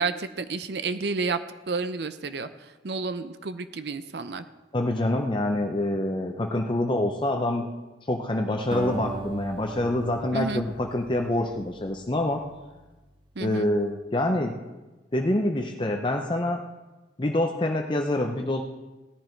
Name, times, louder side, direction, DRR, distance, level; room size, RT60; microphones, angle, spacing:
voice 1, 0.0-1.4 1.7-4.4 10.3-10.6 13.4-13.7, right 4 dB, 70° right, 11 dB, 0.6 m, -30 dB
voice 2, 4.7-7.7 8.1-12.4 13.4-14.5 15.1-16.6 17.2-18.6, left 1 dB, 30° left, 3 dB, 0.7 m, -26 dB
Acoustic guitar, 8.7-13.2, right 3 dB, 25° right, 0.9 m, -39 dB
17.0 x 10.5 x 4.5 m, 1.2 s
head